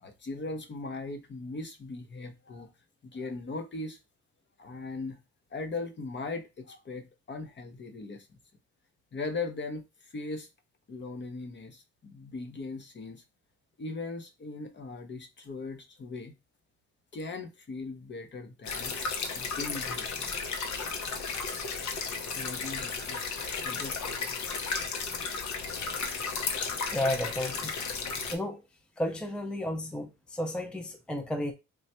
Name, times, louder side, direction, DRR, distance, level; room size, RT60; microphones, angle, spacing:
voice 1, 0.0-2.7 3.0-4.0 4.6-5.2 5.5-8.3 9.1-10.5 10.9-13.2 13.8-16.3 17.1-19.0 19.3-20.4 22.3-23.2 23.6-24.1, left 3 dB, 35° left, 0.8 m, -39 dB
sound 1, 18.6-28.4, left 5 dB, 65° left, 0.9 m, -34 dB
voice 2, 26.9-27.7 28.3-28.6 29.0-31.5, left 1 dB, 5° left, 0.5 m, -32 dB
3.3 x 2.3 x 4.2 m
cardioid pair, 90°, 30 cm